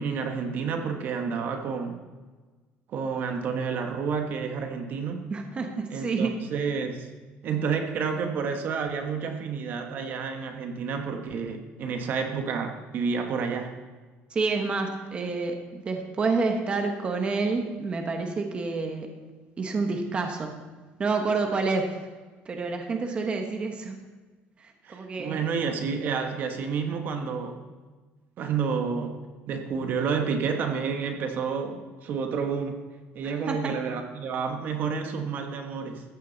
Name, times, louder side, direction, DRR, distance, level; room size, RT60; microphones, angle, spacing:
voice 1, 0.0-2.0 2.9-5.3 5.9-7.1 7.4-13.7 24.8-27.6 28.4-29.1 29.5-32.8 33.1-36.0, right 5 dB, 50° right, 5 dB, 1.2 m, -30 dB
voice 2, 5.3-6.3 14.3-19.2 19.6-20.7 21.0-22.1 22.4-24.0 24.6-25.4 33.2-33.8, right 4 dB, 25° right, 4 dB, 1.2 m, -29 dB
14.5 x 10.5 x 4.0 m, 1.3 s
cardioid pair, 150°, 4 cm